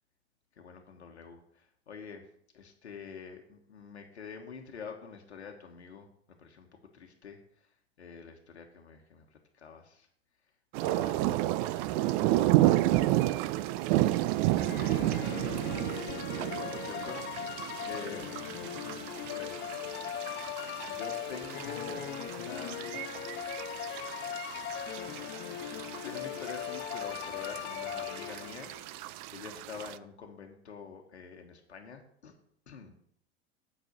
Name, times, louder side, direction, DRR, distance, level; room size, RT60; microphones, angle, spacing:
voice 1, 0.6-2.3 2.5-6.1 6.4-6.7 6.9-7.7 8.0-10.1 10.8-15.7 16.3-17.2 17.8-18.6 19.2-19.6 20.9-23.0 24.7-25.1 25.7-32.3 32.7-32.9, left 6 dB, 85° left, 3 dB, 1.2 m, -47 dB
sound 1, 10.7-30.0, right 16 dB, 50° right, 0.5 m, -32 dB
sound 2, 14.6-28.9, left 11 dB, 35° left, 0.5 m, -39 dB
8.5 x 5.4 x 6.5 m, 0.67 s
hypercardioid pair, 85°, 33 cm